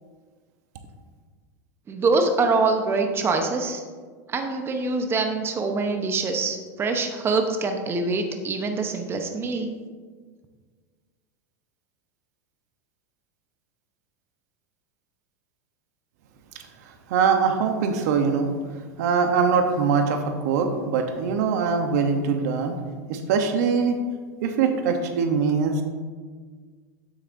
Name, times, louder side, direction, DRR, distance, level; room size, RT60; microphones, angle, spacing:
voice 1, 1.9-3.8 4.3-9.7, right 3 dB, 25° right, 5 dB, 0.9 m, -24 dB
voice 2, 17.1-18.5 19.0-22.7 23.1-24.0 24.4-25.8, right 5 dB, 70° right, 6 dB, 0.9 m, -22 dB
9.1 x 8.2 x 2.7 m, 1.5 s
hypercardioid pair, 110°, 9 cm